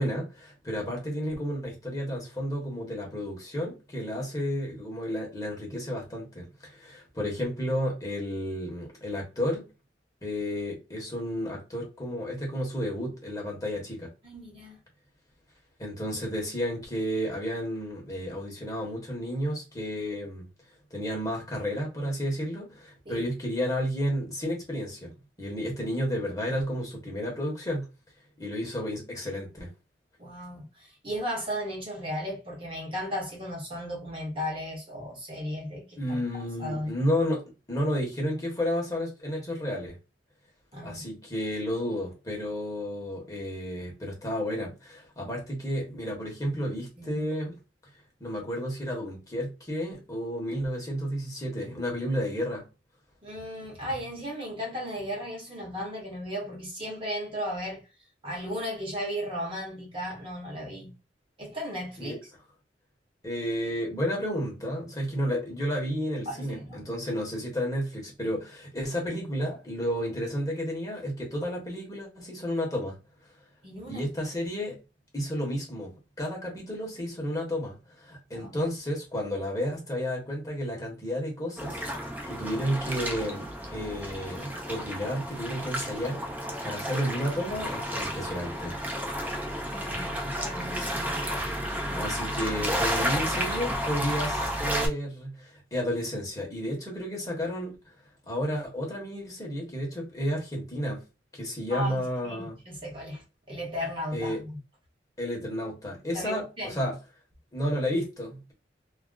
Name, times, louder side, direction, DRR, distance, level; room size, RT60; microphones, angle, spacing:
voice 1, 0.0-9.7 10.2-14.1 15.8-20.5 20.9-25.1 25.4-27.9 28.4-29.7 36.0-37.4 37.7-40.0 40.8-47.6 48.2-52.7 62.0-62.2 63.2-73.0 73.9-74.8 75.1-86.2 86.6-88.8 91.9-97.8 98.3-101.0 101.3-102.6 104.1-104.4 105.2-106.9 107.5-108.5, equal, 20° left, 1.0 m, -32 dB
voice 2, 14.2-14.8 23.1-23.3 30.2-36.2 36.6-37.1 40.7-41.0 47.0-47.2 53.2-57.8 58.2-60.9 61.4-62.1 66.3-66.8 73.6-74.0 78.3-78.6 89.6-91.5 91.8-92.0 93.0-93.1 101.7-104.5 106.1-106.8, equal, 30° right, 0.9 m, -36 dB
sound 1, 81.6-94.9, equal, 10° right, 0.5 m, -32 dB
2.3 x 2.0 x 3.7 m
head